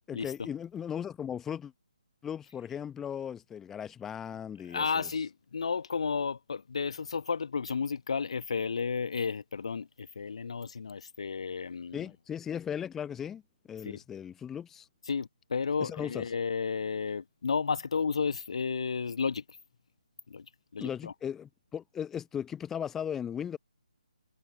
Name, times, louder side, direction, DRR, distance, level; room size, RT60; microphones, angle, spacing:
voice 1, 0.1-1.7 2.2-5.1 11.9-13.4 13.7-14.9 15.8-16.2 20.8-23.6, left 8 dB, 10° left, 1.0 m, -37 dB
voice 2, 4.7-12.0 13.8-14.0 15.1-19.4 20.3-20.4 20.7-21.1, left 5 dB, 50° left, 1.1 m, -32 dB
figure-of-eight pair, 145°, 4 cm